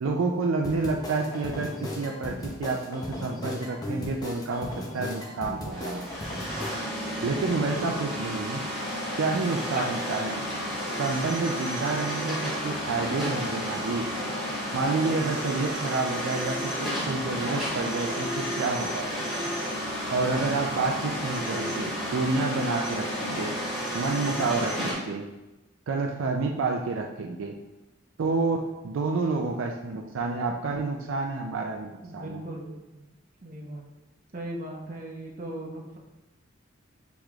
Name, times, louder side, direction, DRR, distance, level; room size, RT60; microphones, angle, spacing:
voice 1, 0.0-6.1 7.2-8.6 9.2-10.4 11.0-14.1 14.7-19.1 20.1-23.5 23.9-25.3 25.9-27.5 28.2-32.4, right 3 dB, 75° right, 2 dB, 0.4 m, -29 dB
sound 1, 0.6-6.7, left 1 dB, 20° left, 0.5 m, -36 dB
sound 2, 5.7-24.9, equal, ahead, 1.2 m, -32 dB
voice 2, 32.0-33.1 33.4-33.8 34.3-36.0, right 1 dB, 40° right, -1 dB, 0.7 m, -38 dB
6.5 x 3.0 x 2.3 m, 1.0 s
head